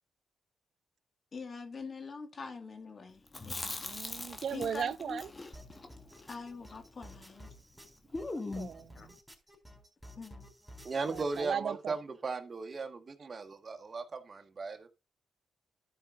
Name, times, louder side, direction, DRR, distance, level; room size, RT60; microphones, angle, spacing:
voice 1, 1.3-3.8 4.2-5.2 6.3-7.5 8.9-9.1 10.2-10.5, left 4 dB, 45° left, 2.3 m, -44 dB
Chewing mastication, 3.3-7.5 7.7-7.8 8.1-8.9, left 2 dB, 30° left, 1.9 m, -41 dB
voice 2, 3.8-5.3 8.3-9.2 11.1-12.0, right 8 dB, 65° right, 0.5 m, -37 dB
sound 1, 5.5-11.5, equal, 5° right, 4.3 m, -53 dB
voice 3, 10.8-14.9, right 4 dB, 45° right, 1.7 m, -37 dB
12.5 x 5.5 x 3.9 m
supercardioid pair, 65°, 0 cm